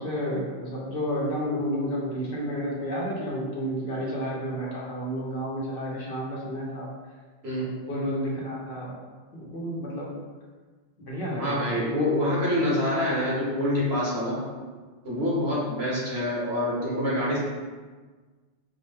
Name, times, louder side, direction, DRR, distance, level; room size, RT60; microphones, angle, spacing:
voice 1, 0.0-6.9 7.6-9.0 9.3-10.1 11.0-11.9, equal, 65° left, -4 dB, 1.1 m, -31 dB
voice 2, 11.4-14.4 15.0-17.4, left 1 dB, 80° right, -7 dB, 1.5 m, -26 dB
4.4 x 2.2 x 3.2 m, 1.4 s
omnidirectional pair, 1.0 m